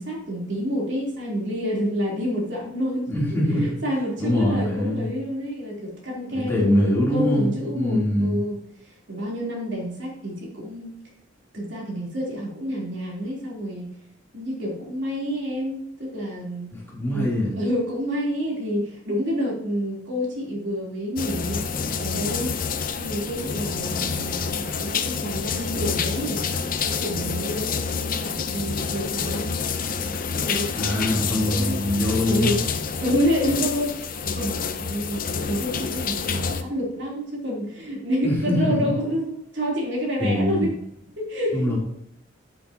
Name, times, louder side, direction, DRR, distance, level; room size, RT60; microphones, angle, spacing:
voice 1, 0.0-3.1 3.6-8.6 8.8-10.9 11.5-13.9 14.3-16.7 17.1-17.3 17.6-21.6 22.0-22.5 23.0-26.4 26.8-29.5 30.0-31.8 32.3-32.6 33.0-40.7 41.2-41.8, equal, 65° right, -3 dB, 3.6 m, -28 dB
voice 2, 3.1-3.7 4.2-5.1 6.3-8.4 16.7-17.6 30.7-32.5 38.2-38.7 40.2-40.7 41.5-41.8, left 1 dB, 10° left, -6 dB, 3.2 m, -23 dB
sound 1, 21.2-36.6, left 5 dB, 45° left, 0.7 m, -28 dB
10.0 x 8.5 x 2.9 m, 0.75 s
head